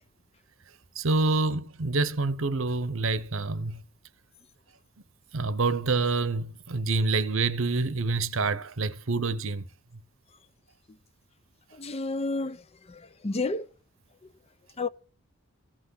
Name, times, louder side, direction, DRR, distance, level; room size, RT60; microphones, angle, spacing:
voice 1, 1.0-3.8 5.3-9.6, right 3 dB, 60° right, 0.9 m, -27 dB
voice 2, 11.8-12.6 13.2-13.7 14.8-14.9, left 3 dB, 30° left, 0.5 m, -29 dB
15.0 x 6.1 x 9.8 m
head